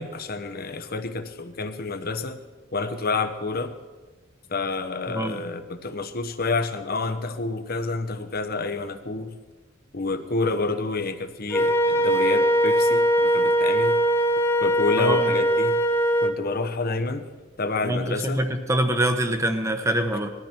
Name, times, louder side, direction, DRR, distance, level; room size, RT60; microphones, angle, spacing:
voice 1, 0.0-2.4 2.7-3.7 4.5-9.3 9.9-14.0 14.6-15.7 16.2-17.3 17.6-18.4, left 3 dB, 45° left, 9 dB, 1.1 m, -28 dB
voice 2, 5.1-5.4 15.0-15.3 17.8-20.3, right 1 dB, 15° right, 7 dB, 1.1 m, -24 dB
Wind instrument woodwind instrument, 11.5-16.4, equal, 10° left, 0.9 m, -21 dB
19.5 x 13.5 x 4.5 m, 1.3 s
head